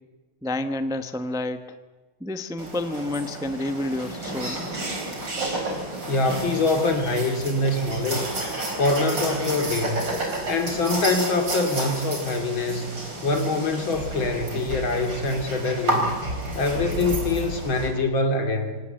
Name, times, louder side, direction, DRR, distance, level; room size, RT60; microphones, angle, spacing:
voice 1, 0.4-1.8 2.2-4.6, left 1 dB, 5° right, 8 dB, 0.6 m, -29 dB
sound 1, 2.6-17.9, right 2 dB, 65° right, 5.0 m, -31 dB
voice 2, 6.1-8.2 8.7-10.2 10.5-16.2 16.5-18.8, left 2 dB, 80° left, 5 dB, 3.4 m, -24 dB
26.0 x 18.0 x 7.8 m, 1.3 s
omnidirectional pair, 2.1 m